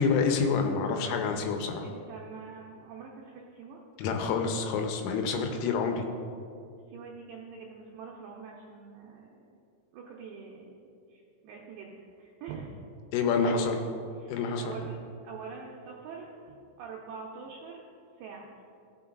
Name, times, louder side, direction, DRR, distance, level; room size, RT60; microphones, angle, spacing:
voice 1, 0.0-1.8 4.0-6.1 13.1-13.8 14.3-14.7, left 5 dB, 85° left, 4 dB, 3.1 m, -27 dB
voice 2, 1.8-3.8 4.1-4.3 6.9-9.6 9.9-11.9 12.2-12.8 13.4-13.8 14.2-15.0 15.2-17.8 18.2-18.5, right 6 dB, 90° right, -3 dB, 2.4 m, -44 dB
16.5 x 6.1 x 2.4 m, 2.4 s
omnidirectional pair, 5.9 m